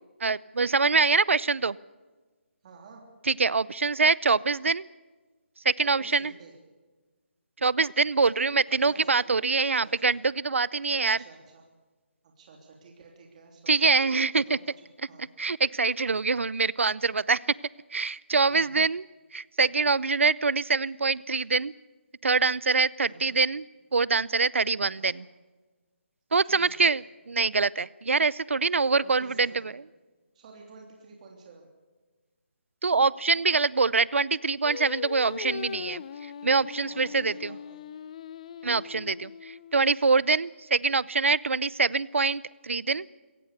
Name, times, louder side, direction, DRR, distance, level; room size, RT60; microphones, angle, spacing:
voice 1, 0.2-1.8 3.3-4.9 5.6-6.3 7.6-11.2 13.7-14.6 15.4-17.4 17.9-19.0 19.3-21.7 22.2-23.6 23.9-25.3 26.3-27.0 27.3-29.7 32.8-36.0 36.4-37.5 38.6-43.1, right 4 dB, 80° right, 22 dB, 0.6 m, -24 dB
voice 2, 2.6-3.0 5.8-6.5 8.7-10.1 10.9-11.6 12.2-14.0 14.5-14.6 15.1-15.2 18.5-18.7 23.0-23.4 24.9-25.3 26.4-26.9 29.0-29.7 30.3-31.7 36.8-37.8 38.6-38.9, right 4 dB, 35° right, 1 dB, 3.2 m, -51 dB
Singing, 34.6-39.9, left 8 dB, 35° left, 0.8 m, -40 dB
22.5 x 17.5 x 6.7 m, 1.3 s
figure-of-eight pair, 160°, 7 cm